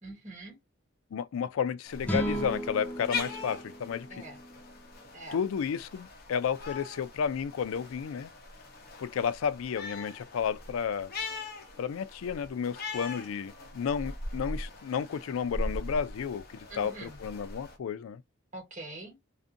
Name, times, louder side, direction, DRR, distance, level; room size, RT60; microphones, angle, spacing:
voice 1, 0.0-0.6 4.1-4.4 5.1-5.4 16.7-17.2 18.5-19.2, right 2 dB, 40° right, 1.5 m, -44 dB
voice 2, 1.1-4.2 5.3-8.3 9.0-11.1 11.8-18.2, left 7 dB, 90° left, 0.3 m, -32 dB
sound 1, 1.8-17.8, left 2 dB, 50° left, 0.8 m, -41 dB
sound 2, 2.0-5.4, equal, 5° left, 0.4 m, -36 dB
2.5 x 2.5 x 2.5 m
head